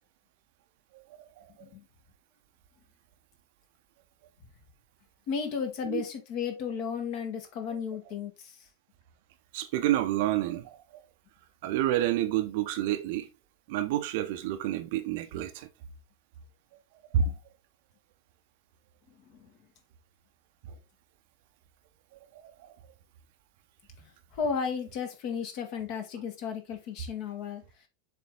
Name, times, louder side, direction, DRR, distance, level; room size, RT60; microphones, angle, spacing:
voice 1, 5.3-8.6 19.3-19.5 24.0-27.6, left 6 dB, 45° left, 1.8 m, -34 dB
voice 2, 9.5-10.8 11.6-13.3 13.7-15.7 17.1-17.4 22.1-22.8, right 11 dB, 50° right, 0.8 m, -29 dB
7.2 x 3.9 x 3.8 m
figure-of-eight pair, 90°, 0 cm